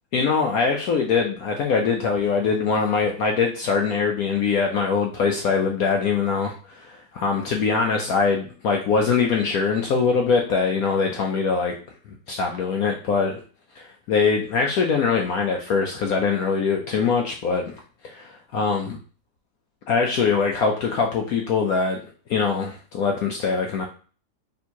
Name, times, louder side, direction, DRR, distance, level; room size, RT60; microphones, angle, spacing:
voice 1, 0.1-11.7 12.3-13.4 13.8-19.0 19.9-22.0 22.3-23.9, left 5 dB, 75° left, 1 dB, 0.8 m, -23 dB
3.4 x 2.8 x 4.4 m, 0.39 s
omnidirectional pair, 2.0 m